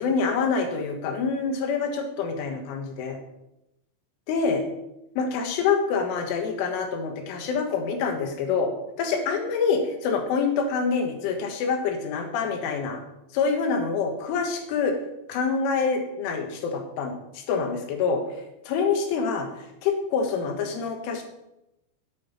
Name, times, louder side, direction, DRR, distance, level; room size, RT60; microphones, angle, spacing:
voice 1, 0.0-3.2 4.3-4.6 5.2-8.7 9.0-13.0 13.3-15.0 15.3-18.2 18.7-19.5 19.8-21.2, left 5 dB, 85° left, 4 dB, 4.0 m, -26 dB
10.0 x 9.2 x 5.5 m, 0.88 s
omnidirectional pair, 5.6 m